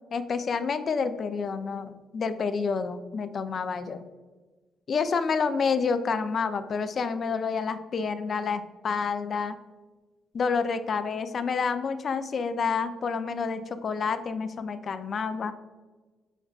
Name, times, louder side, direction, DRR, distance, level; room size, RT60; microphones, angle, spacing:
voice 1, 0.1-4.0 4.9-9.6 10.3-15.5, left 5 dB, 50° left, 10 dB, 0.3 m, -29 dB
6.4 x 2.2 x 2.3 m, 1.3 s
cardioid pair, 90°, 0 cm